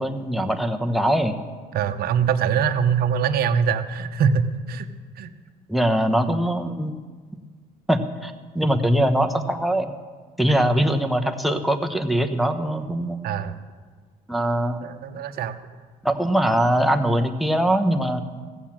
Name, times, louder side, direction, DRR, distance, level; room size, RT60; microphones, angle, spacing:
voice 1, 0.0-1.4 5.7-6.9 7.9-9.9 10.4-13.2 14.3-14.8 16.0-18.2, right 1 dB, ahead, 5 dB, 0.9 m, -22 dB
voice 2, 1.7-4.9 5.2-5.3 13.2-13.6 14.8-15.6, right 7 dB, 65° right, 8 dB, 0.8 m, -23 dB
15.5 x 7.3 x 7.4 m, 1.5 s
cardioid pair, 110°, 17 cm